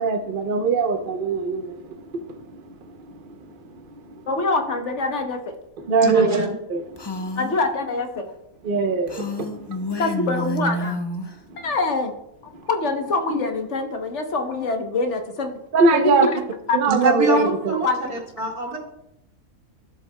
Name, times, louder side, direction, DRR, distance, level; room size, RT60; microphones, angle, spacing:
voice 1, 0.0-2.0 5.9-6.3 6.7-6.8 8.6-9.5 15.7-16.3 16.7-17.7, right 4 dB, 45° right, 0.7 m, -21 dB
voice 2, 4.3-5.5 7.4-8.2 10.0-11.0 11.6-12.1 12.7-15.5 15.9-16.4 16.7-16.8 17.8-18.0, left 3 dB, 55° left, 1.2 m, -24 dB
voice 3, 6.0-6.5 16.9-18.8, right 1 dB, 85° right, 2.4 m, -24 dB
Female speech woman speaking, 7.0-7.6 9.1-11.3, left 1 dB, 30° left, 0.5 m, -29 dB
13.0 x 7.6 x 2.2 m
omnidirectional pair, 1.6 m